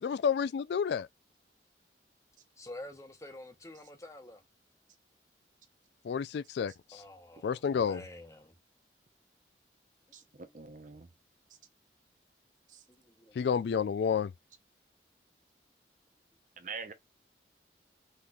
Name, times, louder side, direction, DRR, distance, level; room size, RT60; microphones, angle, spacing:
voice 1, 0.0-1.1 6.0-6.7 7.4-8.0 13.4-14.3, left 7 dB, 70° left, 0.3 m, -30 dB
voice 2, 2.6-4.4 6.9-8.5 10.3-10.6 12.9-13.7, left 1 dB, 15° left, 0.9 m, -49 dB
voice 3, 10.1-11.1 12.7-12.8 16.6-16.9, right 5 dB, 45° right, 0.8 m, -44 dB
5.6 x 3.1 x 2.3 m
head